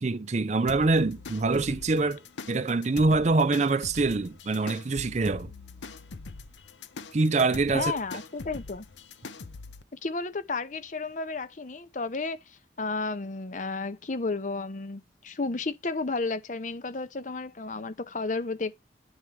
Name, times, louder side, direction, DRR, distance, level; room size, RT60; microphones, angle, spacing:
voice 1, 0.0-2.2 2.5-5.5 7.1-7.9, right 3 dB, 40° right, 0.5 m, -25 dB
sound 1, 0.7-9.8, left 3 dB, 80° left, 0.7 m, -43 dB
voice 2, 7.7-8.8 9.9-18.7, left 3 dB, 45° left, 0.7 m, -32 dB
9.7 x 4.5 x 3.4 m
head